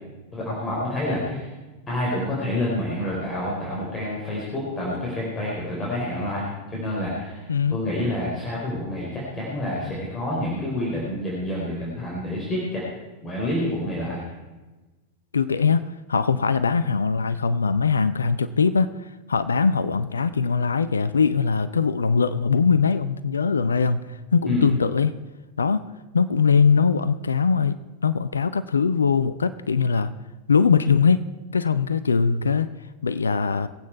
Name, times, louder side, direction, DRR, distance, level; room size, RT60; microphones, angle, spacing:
voice 1, 0.3-1.5 1.9-12.8 13.2-14.2 24.5-24.7, left 1 dB, 20° left, -5 dB, 4.3 m, -28 dB
voice 2, 7.5-7.8 15.3-18.9 19.3-24.0 24.3-25.2 25.6-25.8 26.1-30.1 30.5-31.2 31.5-32.7 33.0-33.7, left 5 dB, 75° left, 14 dB, 0.5 m, -21 dB
22.5 x 8.5 x 4.6 m, 1.2 s
figure-of-eight pair, 90°, 0 cm